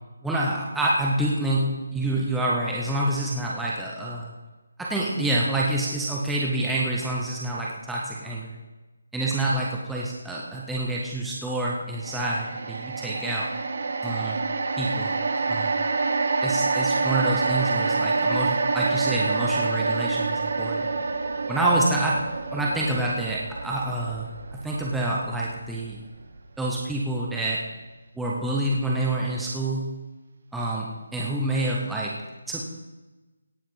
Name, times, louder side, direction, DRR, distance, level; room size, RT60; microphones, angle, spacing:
voice 1, 0.2-4.3 4.8-8.5 9.1-13.5 14.0-14.4 14.7-15.1 15.5-15.8 16.4-20.9 21.5-26.1 26.6-27.6 28.2-29.9 30.5-32.1 32.5-32.6, right 1 dB, ahead, -5 dB, 0.6 m, -27 dB
sound 1, 12.0-26.4 26.7-26.9, right 3 dB, 45° right, 0.9 m, -27 dB
17.0 x 6.1 x 5.4 m, 1.2 s
hypercardioid pair, 180°, 0 cm